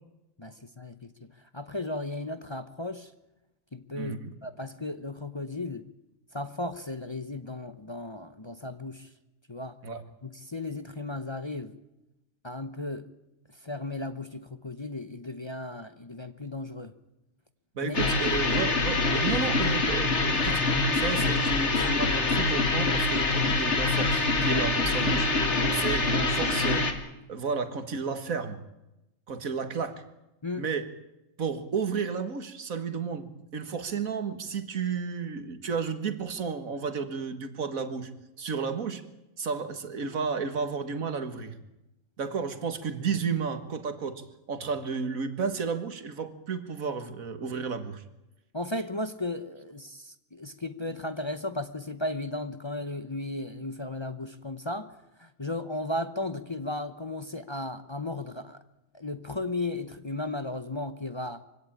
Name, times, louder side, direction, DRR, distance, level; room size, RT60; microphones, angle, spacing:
voice 1, 0.4-3.1 3.7-4.1 4.4-5.9 6.3-9.1 9.5-9.8 10.2-11.8 12.4-13.1 13.6-16.9 17.8-18.0 30.4-30.6 48.5-58.6 58.9-61.4, left 2 dB, 25° left, 10 dB, 0.9 m, -35 dB
voice 2, 3.9-4.3 9.8-10.0 17.8-20.6 20.9-25.3 25.7-26.9 27.3-28.6 29.3-30.0 30.6-30.9 31.4-38.1 38.4-39.0 39.4-41.6 42.2-44.2 44.5-48.0, right 5 dB, 85° right, 10 dB, 2.1 m, -32 dB
sound 1, 17.9-26.9, left 3 dB, 55° left, 2.3 m, -25 dB
23.5 x 16.5 x 8.8 m, 0.96 s
omnidirectional pair, 1.4 m